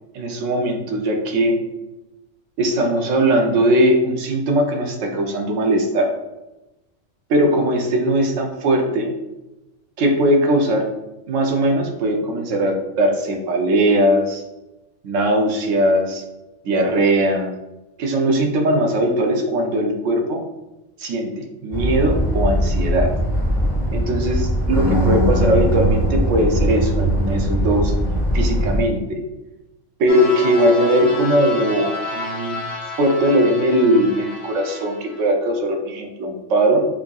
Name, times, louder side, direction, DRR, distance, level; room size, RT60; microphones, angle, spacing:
voice 1, 0.1-1.6 2.6-6.1 7.3-9.1 10.0-10.9 11.3-14.4 15.0-16.2 16.6-17.5 18.0-20.4 21.0-23.1 23.9-27.9 28.3-29.2 30.0-32.6 33.0-36.8, right 1 dB, 75° right, 3 dB, 1.0 m, -19 dB
sound 1, 21.7-28.8, equal, 5° left, 0.6 m, -20 dB
sound 2, 30.1-35.3, left 2 dB, 80° left, 1.1 m, -31 dB
4.8 x 2.7 x 2.3 m, 0.98 s
omnidirectional pair, 1.4 m